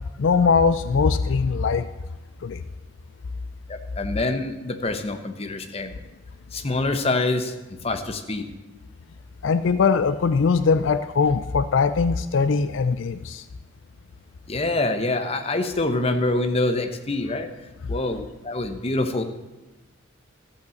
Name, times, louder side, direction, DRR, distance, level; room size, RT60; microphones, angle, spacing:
voice 1, 0.2-1.9 2.4-2.6 9.4-13.4, left 5 dB, 70° left, 12 dB, 0.4 m, -21 dB
voice 2, 3.7-5.9 6.5-7.5 7.8-8.4 14.5-17.5 17.9-19.2, left 2 dB, 30° left, 7 dB, 0.9 m, -25 dB
13.5 x 5.8 x 7.7 m, 1.1 s
head